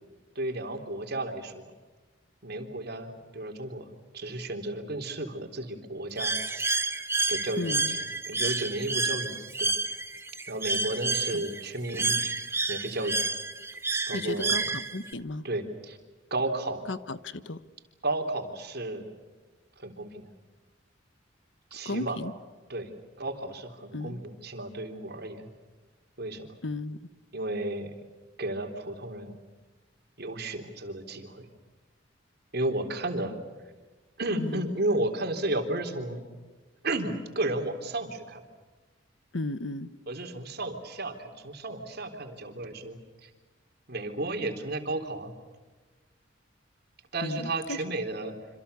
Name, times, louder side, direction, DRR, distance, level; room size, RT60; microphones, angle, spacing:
voice 1, 0.4-1.7 2.4-3.9 4.1-6.4 7.3-7.8 8.3-9.7 10.5-12.2 12.7-13.2 14.1-14.6 15.4-16.0 16.3-16.8 18.0-19.1 19.8-20.3 21.7-22.2 22.7-22.9 23.2-25.5 26.2-26.5 27.3-27.9 28.4-29.3 30.2-31.5 32.5-33.4 34.2-36.2 36.8-38.4 40.1-43.3 43.9-45.3 47.1-48.3, right 2 dB, 55° right, 5 dB, 3.7 m, -33 dB
Bird, 6.2-15.1, right 3 dB, 15° right, 1.5 m, -30 dB
voice 2, 7.6-8.0 11.3-11.4 14.1-15.4 16.9-17.6 21.8-22.3 23.9-24.2 26.6-27.1 34.4-34.7 39.3-39.9 47.2-47.8, left 2 dB, 70° left, 13 dB, 1.2 m, -34 dB
27.5 x 27.0 x 7.0 m, 1.3 s
head